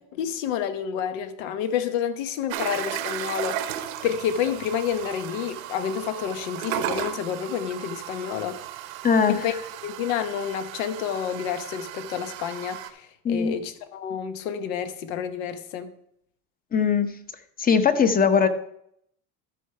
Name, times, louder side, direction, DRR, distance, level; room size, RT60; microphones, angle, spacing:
voice 1, 0.1-8.6 9.3-9.5 9.8-15.9, left 8 dB, 80° left, 1.1 m, -29 dB
sound 1, 2.5-12.9, right 12 dB, 85° right, 1.0 m, -35 dB
voice 2, 9.0-9.5 13.2-13.5 16.7-17.1 17.6-18.5, left 6 dB, 20° left, 0.8 m, -20 dB
13.0 x 4.7 x 4.7 m
supercardioid pair, 110°, 39 cm